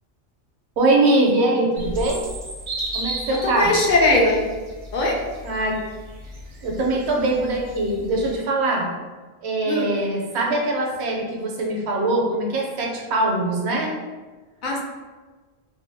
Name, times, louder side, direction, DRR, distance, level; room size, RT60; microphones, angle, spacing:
voice 1, 0.8-2.2 2.9-3.7 5.4-5.7 6.6-8.9 9.4-13.9, right 2 dB, 75° right, -1 dB, 0.9 m, -22 dB
sound 1, 1.8-8.4, right 1 dB, 45° right, 0.5 m, -35 dB
voice 2, 3.4-4.5 4.9-5.2 9.7-9.9 14.6-14.8, left 2 dB, 60° left, -1 dB, 0.5 m, -19 dB
2.6 x 2.5 x 2.6 m, 1.3 s
omnidirectional pair, 1.2 m